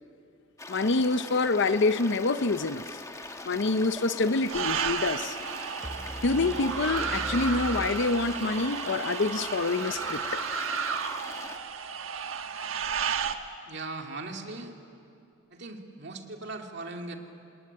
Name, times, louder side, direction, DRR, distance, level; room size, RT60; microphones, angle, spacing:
sound 1, 0.6-11.6, left 2 dB, 15° left, 1.2 m, -42 dB
voice 1, 0.7-3.0 3.5-5.4 6.2-10.4, left 3 dB, 60° left, 12 dB, 0.7 m, -26 dB
sound 2, 4.5-13.3, right 6 dB, 85° right, 1.3 m, -33 dB
sound 3, 5.8-8.9, equal, 5° right, 0.9 m, -40 dB
voice 2, 13.7-14.8 15.5-17.2, right 3 dB, 60° right, 3 dB, 2.3 m, -39 dB
27.5 x 19.0 x 9.9 m, 2.6 s
head